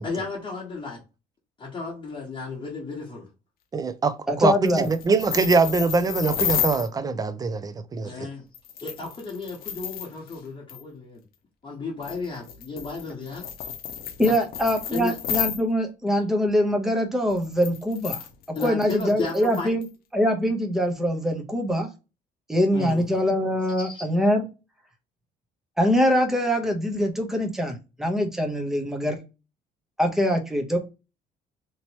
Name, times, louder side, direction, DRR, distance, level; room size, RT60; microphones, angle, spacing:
voice 1, 0.0-1.0 1.6-3.3 8.0-8.4 8.8-11.2 11.6-13.5 14.2-14.3 14.9-15.1 18.5-19.7 22.7-23.1 23.8-24.0, left 4 dB, 30° left, 1.1 m, -33 dB
voice 2, 3.7-8.3, right 4 dB, 20° right, 0.4 m, -23 dB
voice 3, 4.3-4.9 14.2-18.2 18.6-19.9 20.1-21.9 22.5-24.5 25.8-29.2 30.0-30.8, equal, ahead, 0.9 m, -23 dB
sound 1, 4.6-6.9 8.5-10.4 10.7-10.8 12.0-15.6 17.3-19.9, left 9 dB, 65° left, 0.7 m, -32 dB
3.0 x 2.9 x 2.8 m
cardioid pair, 110°, 17 cm